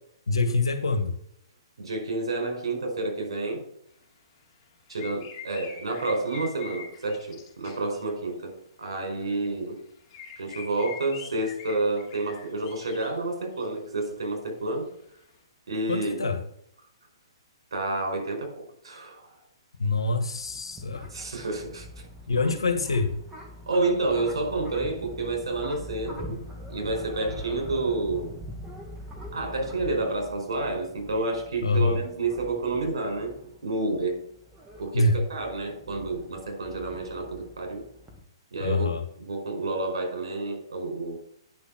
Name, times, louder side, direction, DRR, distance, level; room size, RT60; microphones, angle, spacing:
voice 1, 0.3-1.1 15.9-16.4 19.8-21.1 22.3-23.1 31.6-32.0 34.9-35.2 38.6-39.0, left 3 dB, 85° left, 7 dB, 1.4 m, -25 dB
voice 2, 1.8-3.6 4.9-8.5 8.8-9.8 10.4-14.9 15.7-16.2 17.7-19.4 21.1-21.9 23.7-26.4 26.7-28.4 29.3-33.4 33.6-34.2 34.8-37.8 38.5-38.9 39.2-41.2, right 2 dB, 75° right, 2 dB, 4.8 m, -29 dB
sound 1, 4.9-8.1 8.9-9.2 10.1-13.2 13.5-13.7, left 7 dB, 35° left, 2.8 m, -44 dB
sound 2, 20.4-38.2, equal, 10° right, 2.1 m, -43 dB
9.6 x 6.1 x 6.0 m, 0.71 s
hypercardioid pair, 130°, 3 cm